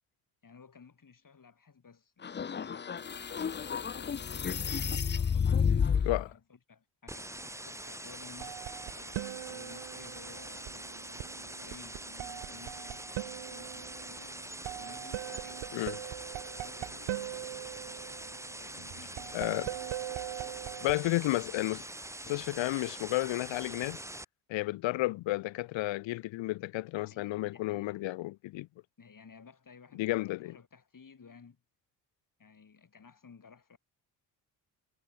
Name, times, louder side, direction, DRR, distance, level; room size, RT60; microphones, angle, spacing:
voice 1, 0.4-4.3 4.6-14.4 14.8-15.8 16.6-17.7 18.5-19.8 26.9-28.1 29.0-31.6 32.4-33.8, left 5 dB, 40° left, 7.7 m, -56 dB
sound 1, 2.2-6.3, left 7 dB, 20° left, 0.6 m, -30 dB
sound 2, 7.1-24.2, right 1 dB, 5° right, 1.7 m, -44 dB
sound 3, 8.4-21.0, right 14 dB, 65° right, 2.0 m, -42 dB
voice 2, 19.3-19.7 20.8-21.9 22.3-24.0 24.5-28.7 29.9-30.6, left 18 dB, 60° left, 0.8 m, -32 dB
hypercardioid pair, 50°, 50 cm